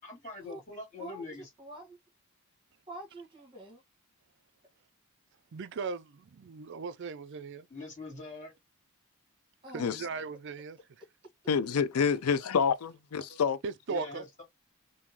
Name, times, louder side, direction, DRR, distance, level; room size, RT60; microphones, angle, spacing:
voice 1, 0.0-1.5 7.7-8.5 13.9-14.4, left 3 dB, 35° left, 2.3 m, -43 dB
voice 2, 1.0-2.0 2.9-3.8 9.6-9.9 11.0-11.1, right 1 dB, 20° right, 1.4 m, -46 dB
voice 3, 5.5-7.7 9.7-10.8 13.3-13.4 13.6-14.2, right 4 dB, 55° right, 0.4 m, -38 dB
voice 4, 11.5-13.6, left 6 dB, 80° left, 0.4 m, -27 dB
3.7 x 2.6 x 2.9 m
head